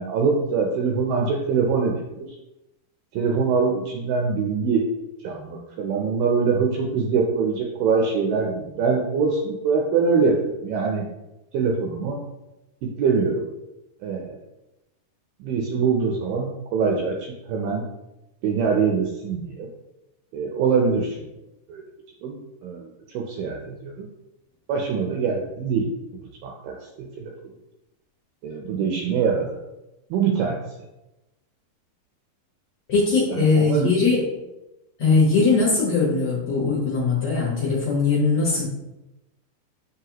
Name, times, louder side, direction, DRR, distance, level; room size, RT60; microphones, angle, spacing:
voice 1, 0.0-2.3 3.1-4.9 5.2-11.1 11.5-12.2 12.8-13.4 14.0-14.4 15.4-17.8 18.4-19.7 20.3-21.2 21.7-21.8 22.2-24.1 24.7-27.3 28.4-29.5 30.1-30.6 33.3-33.9, right 5 dB, 80° right, 0 dB, 2.0 m, -24 dB
voice 2, 32.9-34.2 35.0-38.7, left 4 dB, 55° left, -6 dB, 2.0 m, -20 dB
9.6 x 3.3 x 3.0 m, 0.96 s
omnidirectional pair, 4.6 m